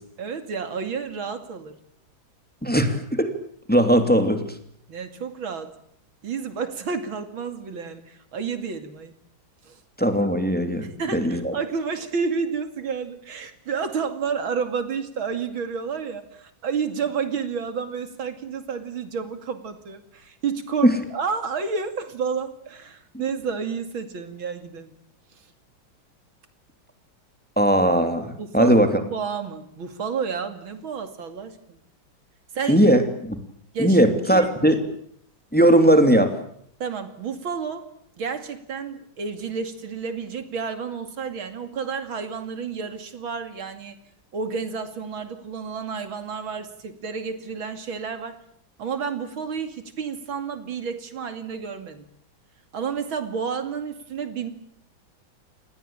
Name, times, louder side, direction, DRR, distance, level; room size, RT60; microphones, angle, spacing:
voice 1, 0.2-1.7 4.9-5.7 6.2-9.1 9.6-9.8 10.8-25.0 28.4-31.8 32.5-32.8 33.7-34.7 36.8-37.9 38.2-44.0 44.3-48.4 48.8-52.1 52.7-54.5, right 6 dB, 85° right, 9 dB, 3.2 m, -30 dB
voice 2, 2.6-3.3 3.7-4.4 10.0-10.8 11.1-11.5 20.8-20.9 27.6-28.9 32.7-33.4 33.8-34.7 35.5-36.3, right 1 dB, 5° left, 7 dB, 2.8 m, -18 dB
28.5 x 20.0 x 8.9 m, 0.67 s
omnidirectional pair, 2.2 m